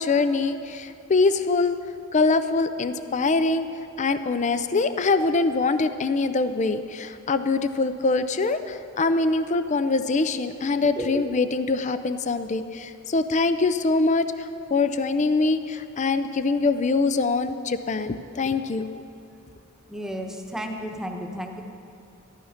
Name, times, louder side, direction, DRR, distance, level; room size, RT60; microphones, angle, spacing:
voice 1, 0.0-1.8 2.1-3.7 4.0-19.0, left 3 dB, 35° left, 11 dB, 0.5 m, -24 dB
voice 2, 19.9-21.6, equal, ahead, 2 dB, 1.0 m, -32 dB
14.5 x 12.0 x 5.8 m, 2.6 s
head